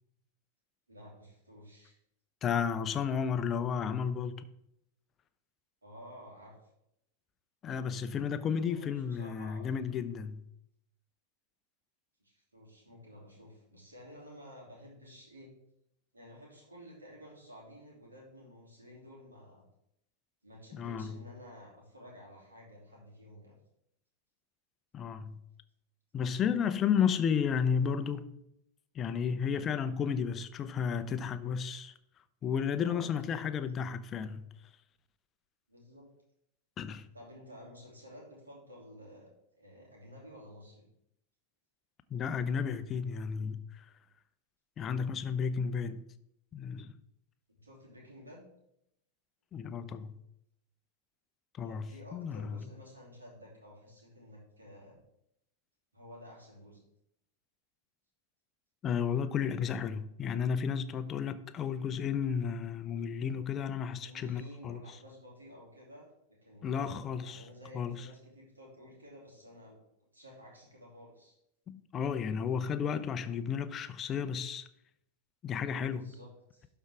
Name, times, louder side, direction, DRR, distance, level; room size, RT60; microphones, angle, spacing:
voice 1, 0.9-2.0 5.8-6.6 8.5-10.1 12.2-15.5 16.1-19.6 20.4-23.6 32.8-33.4 35.7-36.1 37.1-39.3 39.6-40.9 47.5-48.4 51.6-55.0 55.9-56.8 64.0-69.8 70.1-71.4 75.9-76.7, equal, 75° right, 2.9 m, -52 dB
voice 2, 2.4-4.4 7.6-10.4 20.7-21.2 24.9-25.4 26.1-28.3 28.9-31.9 32.4-34.5 36.8-37.1 42.1-43.9 44.8-46.0 46.5-46.9 49.5-50.2 51.6-52.6 58.8-64.8 66.6-67.4 67.7-68.1 71.7-74.7 75.4-76.1, left 7 dB, 25° left, 0.6 m, -33 dB
12.0 x 4.5 x 3.6 m
figure-of-eight pair, 90°, 0 cm